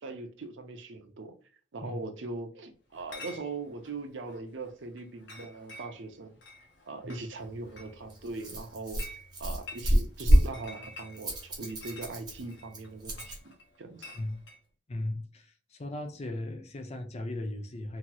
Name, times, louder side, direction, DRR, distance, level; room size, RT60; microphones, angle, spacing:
voice 1, 0.0-1.4 1.7-6.3 6.9-9.0 9.4-13.5 13.8-14.1, right 3 dB, 90° right, 0.6 m, -40 dB
Chatter / Chink clink, 2.9-14.6, left 2 dB, 70° left, 0.9 m, -50 dB
Rattle, 7.4-13.4, equal, 25° right, 1.0 m, -29 dB
voice 2, 14.9-18.0, left 1 dB, 35° left, 0.6 m, -37 dB
2.9 x 2.8 x 2.2 m
head